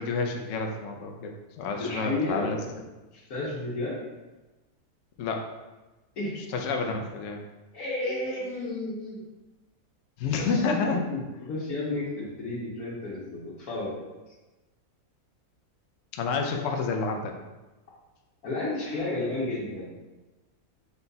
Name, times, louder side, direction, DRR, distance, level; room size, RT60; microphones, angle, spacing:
voice 1, 0.0-1.3 1.6-2.6 5.2-5.4 6.5-7.4 10.2-11.0 16.1-17.3, left 4 dB, 65° left, 3 dB, 0.9 m, -29 dB
voice 2, 1.8-2.7 3.3-4.0 6.2-6.3 7.7-9.2 10.4-14.0 18.4-19.9, left 2 dB, 85° left, -8 dB, 1.5 m, -32 dB
5.6 x 2.3 x 4.0 m, 1.1 s
omnidirectional pair, 1.5 m